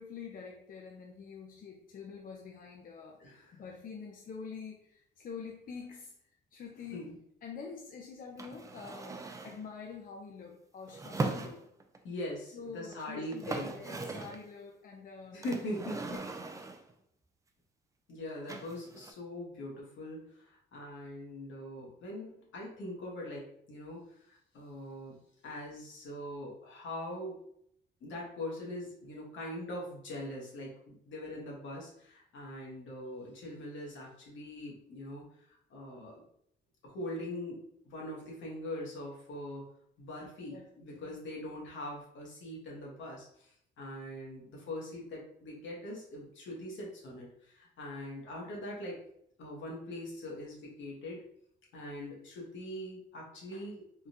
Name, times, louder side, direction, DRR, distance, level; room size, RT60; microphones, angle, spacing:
voice 1, 0.0-6.1 6.5-7.2 7.4-11.7 12.5-15.4 40.5-41.2, left 5 dB, 45° left, 0 dB, 0.5 m, -46 dB
voice 2, 3.2-3.6 6.9-7.2 12.0-13.8 15.3-16.0 18.1-25.2 25.4-27.4 28.0-36.2 36.8-39.7 40.0-49.0 49.4-51.3 51.7-54.1, left 1 dB, 70° left, -2 dB, 1.2 m, -42 dB
sound 1, 8.4-9.6 10.9-12.0 12.9-13.0 13.2-14.5 15.4-16.9 18.5-19.1, right 3 dB, 15° right, 0.4 m, -39 dB
3.6 x 2.3 x 2.7 m, 0.71 s
cardioid pair, 90°, 20 cm